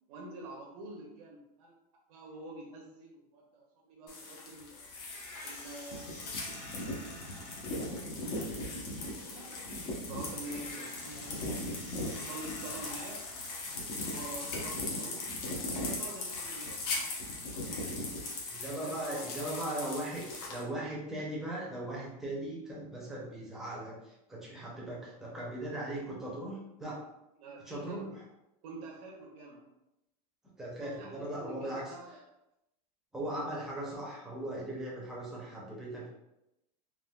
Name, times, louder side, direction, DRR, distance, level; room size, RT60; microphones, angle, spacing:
voice 1, 0.1-1.7 2.1-4.9 5.4-7.5 8.7-9.6 9.9-13.3 13.9-15.3 15.7-17.1 18.1-18.3 18.7-21.0 27.4-28.0 28.6-29.6 30.8-32.2, right 2 dB, 60° right, -3 dB, 0.6 m, -47 dB
sound 1, 4.1-20.6, left 2 dB, 65° left, 0.9 m, -39 dB
sound 2, 4.6-14.5, left 1 dB, 35° left, 0.7 m, -50 dB
voice 2, 18.5-20.2 20.5-27.0 27.7-28.2 30.6-31.9 33.1-36.1, right 1 dB, ahead, -5 dB, 0.5 m, -38 dB
3.5 x 2.2 x 2.2 m, 0.89 s
supercardioid pair, 165°, 21 cm